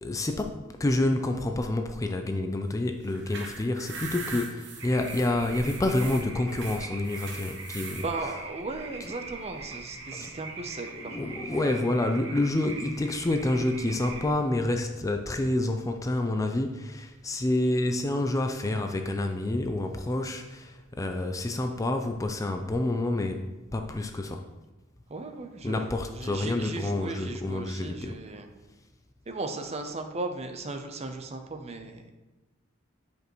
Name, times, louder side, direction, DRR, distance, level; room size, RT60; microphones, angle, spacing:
voice 1, 0.0-8.4 10.1-10.3 10.9-24.5 25.6-28.2, left 2 dB, 15° left, 5 dB, 0.4 m, -28 dB
sound 1, 3.0-8.1, right 4 dB, 60° right, 1.3 m, -41 dB
sound 2, 4.8-14.3, right 3 dB, 80° right, 1.0 m, -42 dB
voice 2, 8.0-11.8 25.1-28.5 29.3-32.1, right 3 dB, 30° right, 6 dB, 0.6 m, -37 dB
8.8 x 5.2 x 3.1 m, 1.1 s
head